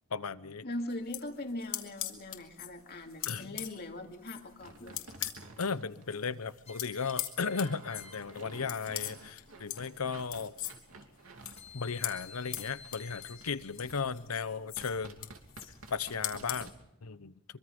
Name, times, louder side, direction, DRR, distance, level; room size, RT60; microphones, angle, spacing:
voice 1, 0.1-0.6 3.3-3.5 5.2-5.3 5.6-10.5 11.7-15.3 15.9-16.7 17.0-17.3, left 5 dB, 85° left, 15 dB, 0.9 m, -35 dB
voice 2, 0.6-5.0, left 1 dB, 45° left, 4 dB, 2.4 m, -40 dB
sound 1, 0.9-5.7 6.0-16.7, left 13 dB, 70° left, 2.6 m, -42 dB
sound 2, 3.6-4.1 6.7-9.3 11.6-14.1, left 5 dB, 30° left, 1.2 m, -54 dB
sound 3, 4.6-6.5 7.2-11.8 12.6-13.5 13.8-14.0 14.8-16.7, right 2 dB, 70° right, 2.9 m, -52 dB
25.0 x 24.0 x 5.4 m, 0.83 s
head